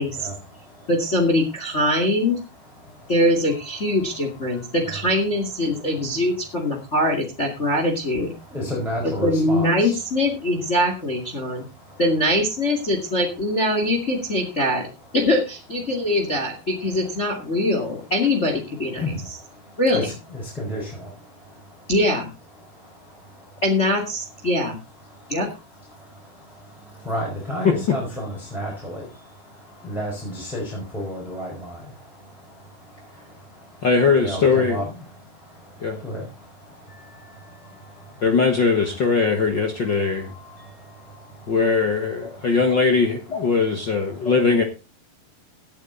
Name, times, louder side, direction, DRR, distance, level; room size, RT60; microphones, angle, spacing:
voice 1, 0.0-0.9 2.7-3.2 3.5-5.1 5.6-6.2 6.8-6.9 8.3-10.0 11.3-12.0 14.3-14.6 15.9-16.1 16.8-17.7 18.9-21.9 22.6-23.6 24.5-24.6 25.0-33.9 34.2-34.9 35.1-39.3 39.7-41.8 42.2-42.6 43.5-43.6 44.1-44.3, equal, ahead, -2 dB, 4.6 m, -35 dB
voice 2, 0.9-2.4 3.1-8.3 9.2-11.6 12.0-14.9 15.1-19.0 19.8-20.1 21.9-22.3 23.6-24.8 25.3-25.5 42.2-42.3 43.3-43.4 44.3-44.4, left 1 dB, 25° left, 3 dB, 2.0 m, -22 dB
voice 3, 27.6-28.0 33.8-34.8 35.8-36.0 38.2-40.3 41.5-44.6, left 4 dB, 50° left, 5 dB, 1.3 m, -20 dB
16.5 x 9.2 x 3.9 m, 0.30 s
omnidirectional pair, 4.2 m